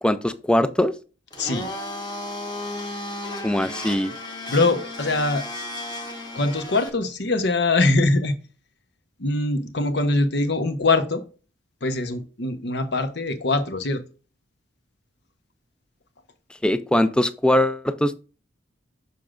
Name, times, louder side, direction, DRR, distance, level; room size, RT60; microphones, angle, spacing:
voice 1, 0.0-0.9 3.4-4.1 16.6-18.2, left 1 dB, 5° left, 13 dB, 0.3 m, -21 dB
Domestic sounds home sounds, 1.3-6.9, left 1 dB, 20° left, 1.2 m, -34 dB
voice 2, 1.4-1.7 4.5-5.4 6.3-8.3 9.2-11.2 11.8-14.0, left 2 dB, 60° left, 9 dB, 0.9 m, -22 dB
6.9 x 6.1 x 2.5 m, 0.35 s
head